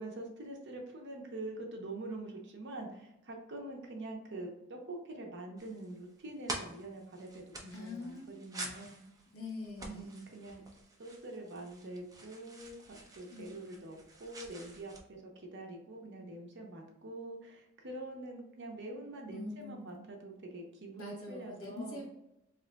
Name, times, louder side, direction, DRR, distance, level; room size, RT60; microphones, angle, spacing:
voice 1, 0.0-9.0 9.8-10.6 11.0-22.0, right 2 dB, 60° right, 1 dB, 0.7 m, -45 dB
sound 1, 5.6-15.0, right 2 dB, 15° right, 0.5 m, -48 dB
voice 2, 7.7-8.3 9.3-10.1 13.3-13.4 13.7-13.9 19.3-20.0 21.0-22.1, left 2 dB, 75° left, -2 dB, 1.2 m, -44 dB
3.8 x 2.9 x 2.2 m, 0.88 s
head